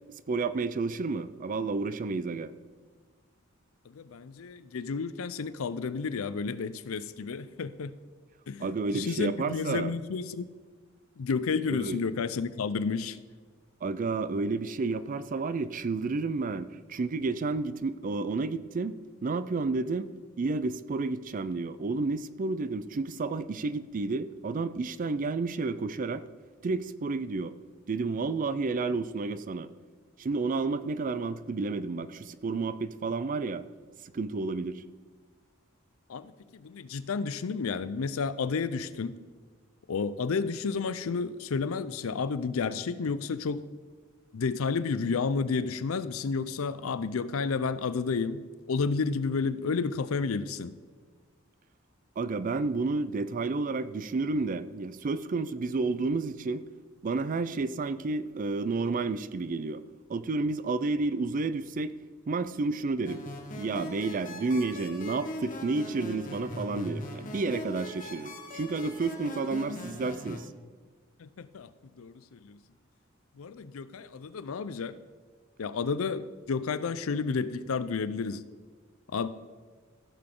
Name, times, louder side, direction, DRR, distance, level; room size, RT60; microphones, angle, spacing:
voice 1, 0.3-2.5 8.6-9.9 11.7-12.0 13.8-20.1 20.4-26.2 26.6-27.5 27.9-29.7 30.2-33.6 34.1-34.8 52.2-56.6 57.0-59.8 60.1-61.9 62.3-63.2 63.6-70.5, right 3 dB, 40° right, 0.4 m, -31 dB
voice 2, 3.9-7.9 8.5-10.5 11.2-13.2 36.1-39.1 39.9-43.7 44.3-48.4 48.7-50.8 71.2-71.7 72.0-72.6 73.4-75.0 75.6-78.4 79.1-79.3, left 5 dB, 80° left, 0.5 m, -31 dB
sound 1, 63.0-70.4, left 1 dB, 40° left, 1.1 m, -40 dB
15.0 x 6.8 x 3.8 m
head